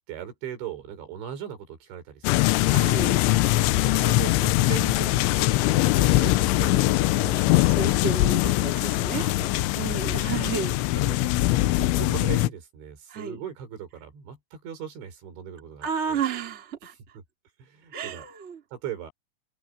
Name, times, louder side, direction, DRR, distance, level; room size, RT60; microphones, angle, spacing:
voice 1, 0.0-2.7 3.8-7.5 9.1-9.5 9.8-9.9 11.0-16.2 17.6-18.3 18.7-19.1, right 9 dB, 60° right, 6.2 m, -39 dB
sound 1, 2.2-12.5, left 17 dB, 80° left, 3.0 m, -22 dB
voice 2, 2.6-3.2 6.6-9.2 9.7-10.8 13.1-13.4 15.8-16.9 17.9-18.6, right 6 dB, 30° right, 1.1 m, -32 dB
omnidirectional pair, 5.9 m